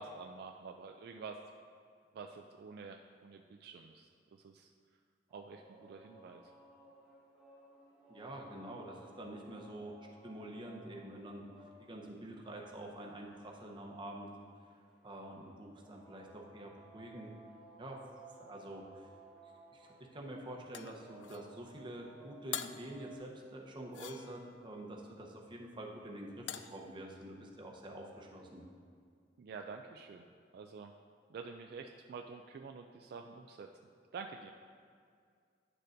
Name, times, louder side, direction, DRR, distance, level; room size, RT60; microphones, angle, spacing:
voice 1, 0.0-1.4 2.1-4.7 5.3-6.4 29.4-30.2 30.5-30.9 31.3-33.7 34.1-34.5, right 4 dB, 60° right, 4 dB, 0.3 m, -48 dB
sound 1, 5.3-23.2, right 2 dB, 5° right, 1.8 m, -59 dB
voice 2, 8.1-9.9 10.2-11.4 11.8-14.3 15.0-17.3 17.8-18.0 18.4-19.1 19.7-28.6, right 1 dB, 30° right, -1 dB, 0.8 m, -47 dB
sound 2, 20.7-21.5 22.5-22.9 23.9-24.6 26.5-26.8, left 10 dB, 85° left, 0.3 m, -43 dB
9.8 x 6.6 x 2.6 m, 2.2 s
head